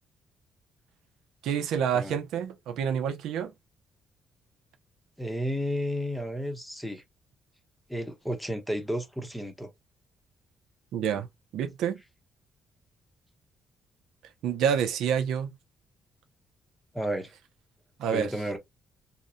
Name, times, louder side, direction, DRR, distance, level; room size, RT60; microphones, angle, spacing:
voice 1, 1.4-3.5 10.9-11.3 11.5-12.0 14.4-15.5 18.0-18.3, right 8 dB, 85° right, 0.4 m, -28 dB
voice 2, 5.2-7.0 7.9-9.7 16.9-17.3 18.1-18.6, equal, 5° left, 0.8 m, -32 dB
2.7 x 2.0 x 2.4 m
cardioid pair, 90°, 0 cm